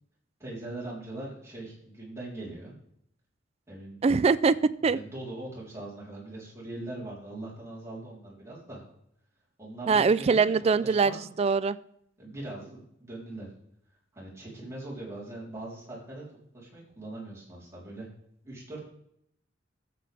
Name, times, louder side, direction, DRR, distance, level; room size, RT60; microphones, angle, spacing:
voice 1, 0.4-2.7 3.7-4.0 4.8-8.8 9.6-10.5 10.8-11.3 12.2-13.5 14.1-16.3 16.5-18.1 18.4-18.9, right 2 dB, 15° right, -7 dB, 3.6 m, -41 dB
voice 2, 4.0-4.6 4.8-5.0 9.9-11.8, right 5 dB, 30° right, 16 dB, 0.3 m, -23 dB
13.0 x 7.7 x 3.4 m, 0.72 s
head